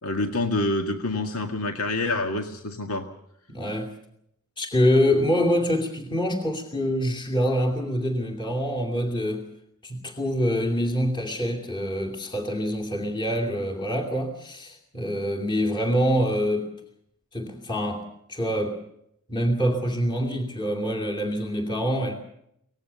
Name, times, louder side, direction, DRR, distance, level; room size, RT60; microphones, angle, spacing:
voice 1, 0.0-3.1, left 2 dB, 90° left, 4 dB, 1.9 m, -27 dB
voice 2, 3.5-3.9 4.6-9.4 9.8-16.7 17.3-18.0 18.3-18.8 19.3-22.1, equal, 20° left, 1 dB, 2.7 m, -25 dB
24.5 x 19.0 x 6.9 m, 0.74 s
head